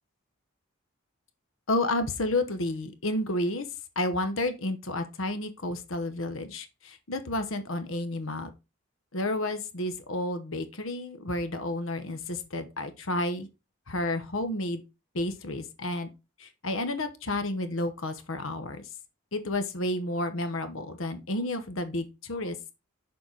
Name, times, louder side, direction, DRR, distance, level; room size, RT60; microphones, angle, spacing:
voice 1, 1.7-3.7 4.0-8.5 9.1-13.5 13.9-14.8 15.1-16.1 16.4-18.8 19.3-22.7, left 1 dB, 70° left, 1.0 m, -31 dB
6.9 x 4.8 x 3.9 m
head